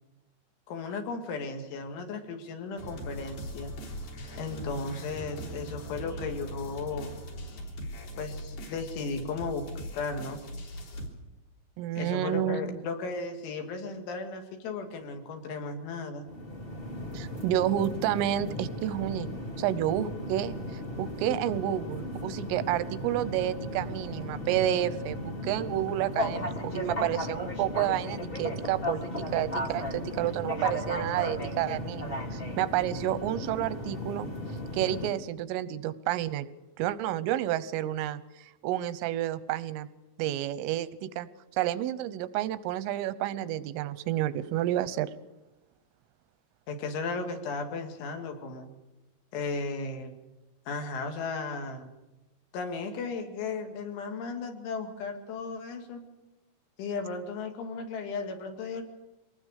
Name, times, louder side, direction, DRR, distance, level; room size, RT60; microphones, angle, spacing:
voice 1, 0.7-3.7 4.4-7.2 8.2-9.7 9.9-10.4 12.0-16.3 46.7-48.7 49.3-50.1 50.7-51.9 52.5-56.0 56.8-58.8, left 4 dB, 75° left, 5 dB, 4.7 m, -35 dB
sound 1, 2.8-11.1, right 1 dB, 55° left, 5.2 m, -40 dB
voice 2, 11.8-12.8 17.1-19.3 19.6-34.3 34.7-36.5 36.8-39.9 40.2-45.1, right 12 dB, 90° right, 15 dB, 3.5 m, -30 dB
sound 2, 16.3-35.1, left 1 dB, 25° left, 1.1 m, -36 dB
24.5 x 19.5 x 6.6 m, 1.0 s
omnidirectional pair, 5.6 m